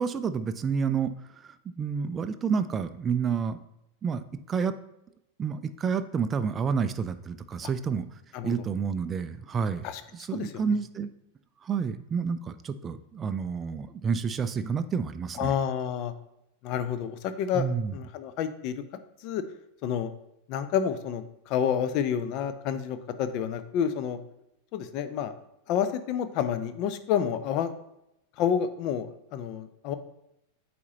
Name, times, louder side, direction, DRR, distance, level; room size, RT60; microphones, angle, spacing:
voice 1, 0.0-3.6 4.0-4.8 5.4-8.1 8.4-9.9 10.1-11.1 11.6-15.5 17.5-17.9, right 6 dB, 20° right, 11 dB, 0.3 m, -29 dB
voice 2, 15.4-16.1 16.6-17.7 17.9-18.8 19.2-19.4 19.8-20.1 20.5-24.2 24.7-25.3 25.7-27.7 28.4-30.0, left 8 dB, 40° left, 11 dB, 0.5 m, -29 dB
8.3 x 4.3 x 2.8 m, 0.84 s
figure-of-eight pair, 90°, 0 cm